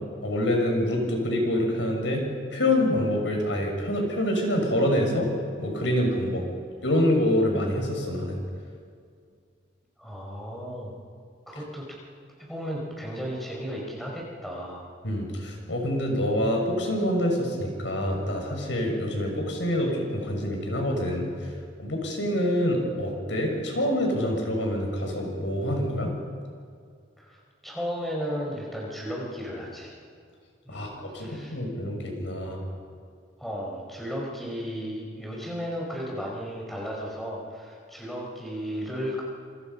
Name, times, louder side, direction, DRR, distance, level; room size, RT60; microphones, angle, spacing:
voice 1, 0.2-2.2 2.5-5.3 5.6-6.4 6.8-8.4 15.0-21.3 21.8-26.1 30.7-32.7, left 1 dB, 85° left, 1 dB, 6.5 m, -26 dB
voice 2, 10.0-10.9 11.5-11.9 12.4-14.9 27.2-27.4 27.6-29.9 30.7-30.9 31.2-31.6 33.4-39.2, equal, ahead, -3 dB, 5.3 m, -34 dB
27.5 x 26.5 x 5.6 m, 2.2 s
head